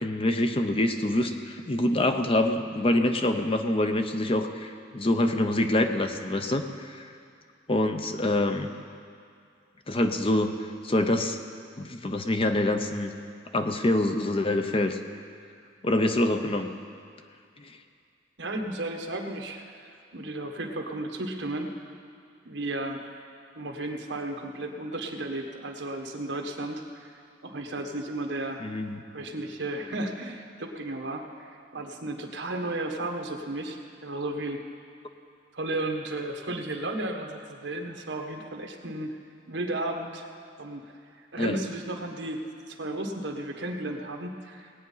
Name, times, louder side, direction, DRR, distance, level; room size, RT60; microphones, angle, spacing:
voice 1, 0.0-7.1 7.7-8.7 9.9-10.6 10.8-11.4 11.8-13.1 13.5-15.0 15.8-16.7 17.6-17.7 28.6-29.0 41.4-41.6, left 1 dB, 30° left, 6 dB, 0.6 m, -25 dB
voice 2, 18.4-21.7 22.4-23.0 23.5-27.1 27.4-28.7 29.1-34.6 35.5-39.2 39.5-40.3 40.6-40.9 41.3-44.9, right 2 dB, 70° right, 3 dB, 1.3 m, -34 dB
18.5 x 8.6 x 5.6 m, 2.4 s
head